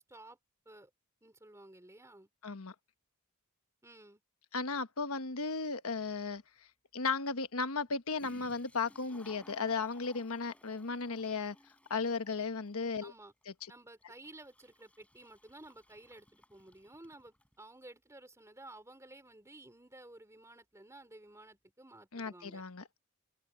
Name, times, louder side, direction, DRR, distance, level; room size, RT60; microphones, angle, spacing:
voice 1, 1.2-2.3 3.8-4.2 13.0-13.3 13.7-22.6, right 2 dB, 15° right, 3.4 m, -54 dB
voice 2, 2.4-2.7 4.5-6.4 6.9-11.5 11.9-13.1 22.1-23.0, left 4 dB, 65° left, 1.2 m, -35 dB
Toilet flush, 6.1-6.2 7.9-8.0 8.2-17.6, left 1 dB, 5° left, 4.2 m, -61 dB
open air
head